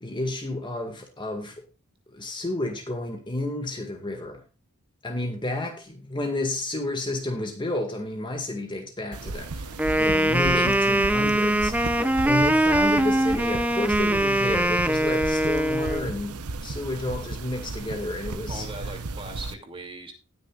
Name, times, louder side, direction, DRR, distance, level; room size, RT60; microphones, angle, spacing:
voice 1, 0.0-1.6 2.1-4.4 5.0-18.7, left 2 dB, 20° left, 1.9 m, -31 dB
sound 1, 9.1-19.5, right 3 dB, 90° right, 0.9 m, -35 dB
Wind instrument woodwind instrument, 9.8-16.1, right 1 dB, 5° right, 0.7 m, -22 dB
voice 2, 18.5-20.1, right 2 dB, 25° right, 2.7 m, -39 dB
19.5 x 6.8 x 2.5 m
head